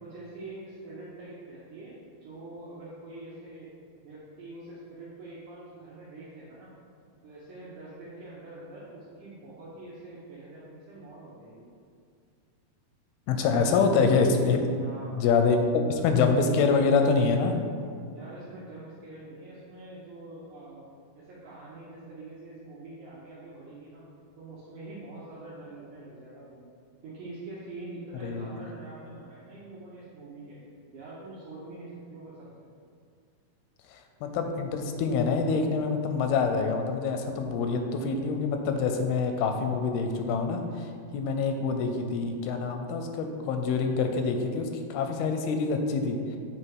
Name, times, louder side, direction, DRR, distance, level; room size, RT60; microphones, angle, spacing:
voice 1, 0.0-3.7 4.0-6.7 7.2-11.7 13.6-14.0 14.8-15.2 18.1-20.8 21.2-24.1 24.4-26.6 27.0-30.6 30.9-32.5, right 2 dB, 70° right, -9 dB, 2.0 m, -45 dB
voice 2, 13.3-14.6 15.1-15.6 15.9-17.6 28.2-28.5 33.9-46.2, left 4 dB, 90° left, 5 dB, 2.5 m, -26 dB
7.9 x 3.2 x 4.6 m, 2.3 s
omnidirectional pair, 4.3 m